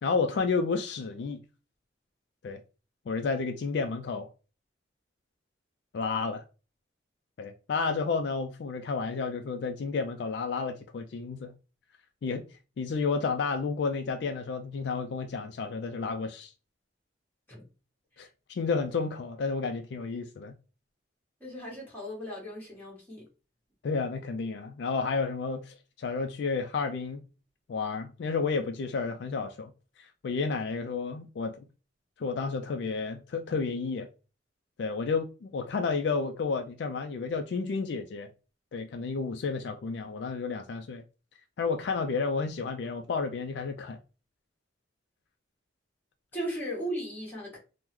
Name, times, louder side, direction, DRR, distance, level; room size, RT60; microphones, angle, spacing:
voice 1, 0.0-1.4 2.4-2.6 3.1-4.3 5.9-6.4 7.4-11.5 12.2-12.4 12.8-16.5 18.2-20.5 23.8-27.2 27.7-29.7 30.0-31.5 32.2-34.1 34.8-38.3 38.7-41.0 41.6-44.0, left 4 dB, 60° left, 0.3 m, -31 dB
voice 2, 21.4-23.2 46.3-47.6, equal, 10° left, 1.4 m, -36 dB
3.6 x 2.1 x 3.0 m
head